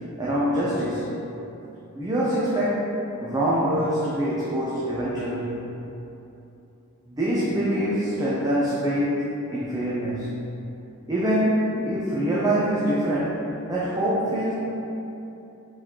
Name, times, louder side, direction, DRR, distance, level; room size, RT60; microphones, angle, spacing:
voice 1, 0.2-1.1 1.9-2.9 3.2-5.7 7.1-10.3 11.1-13.4 13.7-14.5, equal, 15° right, -8 dB, 0.4 m, -24 dB
3.9 x 3.2 x 2.8 m, 2.9 s
head